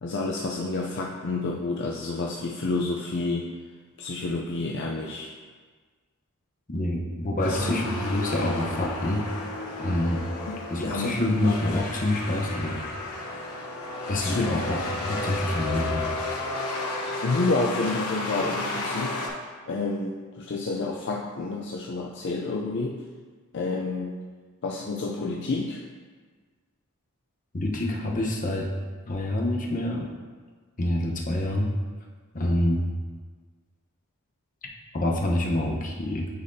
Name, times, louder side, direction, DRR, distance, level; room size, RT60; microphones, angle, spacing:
voice 1, 0.0-3.5 4.0-5.3 7.4-7.7 10.5-11.2 14.2-14.6 17.2-19.2 19.7-23.0 23.5-24.1 24.6-25.8, left 3 dB, 55° left, -1 dB, 0.4 m, -29 dB
voice 2, 6.7-9.2 9.8-10.2 10.7-12.8 14.1-16.1 27.5-28.7 29.1-30.1 30.8-31.7 32.3-32.9 34.9-36.3, left 1 dB, 35° left, -1 dB, 0.8 m, -26 dB
sound 1, 7.4-19.3, left 2 dB, 80° left, 1.0 m, -32 dB
9.4 x 4.1 x 2.7 m, 1.5 s
head